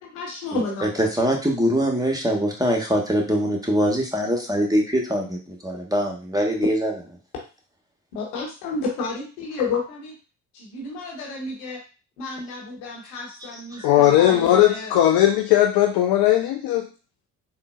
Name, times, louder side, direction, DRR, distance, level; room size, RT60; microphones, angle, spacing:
voice 1, 0.0-0.9 8.1-10.2 10.5-11.8 12.2-14.9, left 3 dB, 85° left, -1 dB, 0.9 m, -31 dB
voice 2, 0.5-6.9 13.7-13.9, equal, 10° right, 1 dB, 0.9 m, -23 dB
voice 3, 13.8-16.9, left 12 dB, 60° left, 3 dB, 0.5 m, -18 dB
3.7 x 2.1 x 2.4 m, 0.33 s
hypercardioid pair, 40°, 43 cm